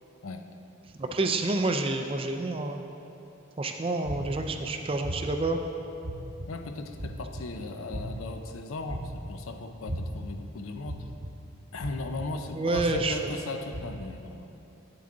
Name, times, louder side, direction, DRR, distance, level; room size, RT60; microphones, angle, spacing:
voice 1, 1.0-2.8 3.6-5.6 12.6-13.3, right 2 dB, 25° right, 5 dB, 0.4 m, -28 dB
sound 1, 4.0-4.5 5.0-5.4 6.0-6.5 7.0-7.4 7.9-8.3 8.9-9.3 9.9-10.3 10.9-11.3 11.8-12.3 12.7-13.1 13.7-13.8, equal, 80° right, 1.2 m, -35 dB
voice 2, 6.5-11.1 11.7-14.5, left 3 dB, 80° left, 6 dB, 0.5 m, -37 dB
8.7 x 6.9 x 3.8 m, 2.9 s
head